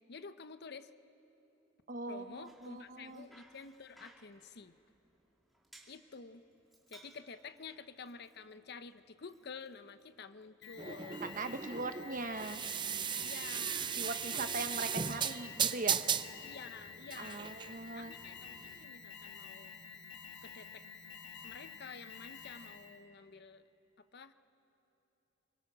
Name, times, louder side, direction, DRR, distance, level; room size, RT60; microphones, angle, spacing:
voice 1, 0.1-0.9 2.1-4.8 5.9-6.4 6.9-11.3 13.2-14.8 16.4-19.7 20.4-20.8 21.4-23.6 24.0-24.3, left 5 dB, 55° left, 12 dB, 0.7 m, -50 dB
voice 2, 1.9-3.2 11.2-12.6 14.0-16.0 17.2-18.1, right 3 dB, 45° right, 9 dB, 1.0 m, -40 dB
Bicycle, 2.2-10.5, right 1 dB, ahead, 2.9 m, -64 dB
Alarm, 10.6-23.0, left 5 dB, 70° left, 2.1 m, -50 dB
sound 1, 10.8-18.8, right 7 dB, 25° right, 0.5 m, -37 dB
27.5 x 24.5 x 6.2 m, 3.0 s
head